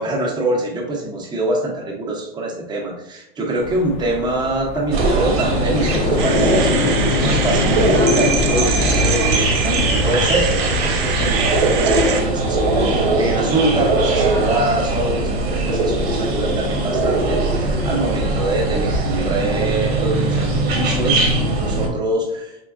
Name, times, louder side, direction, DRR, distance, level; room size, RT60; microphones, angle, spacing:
voice 1, 0.0-22.6, right 2 dB, 15° right, -1 dB, 0.6 m, -24 dB
sound 1, 3.6-11.3, left 6 dB, 50° left, 0.4 m, -26 dB
sound 2, 4.9-21.9, right 2 dB, 80° right, 1.0 m, -20 dB
sound 3, 6.2-12.2, right 7 dB, 55° right, 0.5 m, -25 dB
3.7 x 3.4 x 2.4 m, 0.81 s
supercardioid pair, 145°, 31 cm